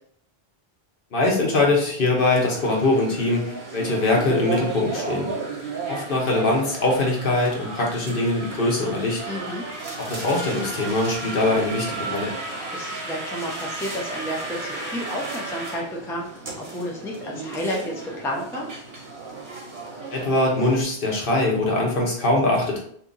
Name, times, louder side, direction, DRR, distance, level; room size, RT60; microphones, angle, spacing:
voice 1, 1.1-5.3 5.9-9.2 10.0-12.3 20.1-22.8, left 2 dB, 60° left, -2 dB, 1.1 m, -22 dB
sound 1, 2.1-20.8, right 3 dB, 55° right, 1.0 m, -34 dB
voice 2, 9.3-9.7 12.7-18.7, equal, 5° left, -2 dB, 0.4 m, -31 dB
2.8 x 2.7 x 3.8 m, 0.63 s
omnidirectional pair, 1.0 m